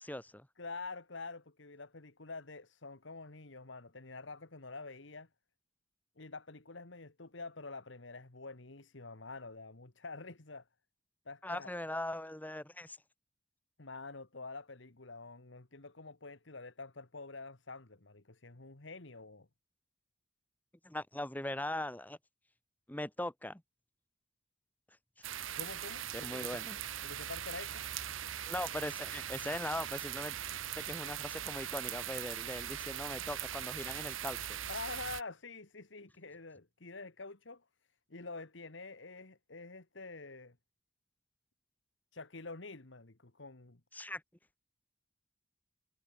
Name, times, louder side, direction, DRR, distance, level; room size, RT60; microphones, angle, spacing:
voice 1, 0.0-0.5 11.4-13.0 20.8-22.2 22.9-23.6 26.2-26.8 28.5-30.4 30.7-34.6 43.9-44.2, left 1 dB, 10° left, 1.7 m, -40 dB
voice 2, 0.6-5.3 6.2-10.7 11.3-11.8 13.8-19.5 25.5-26.6 27.0-27.9 34.7-37.7 38.1-40.6 42.1-43.8, left 3 dB, 65° left, 1.7 m, -47 dB
sound 1, 25.2-35.2, right 11 dB, 80° right, 1.0 m, -40 dB
head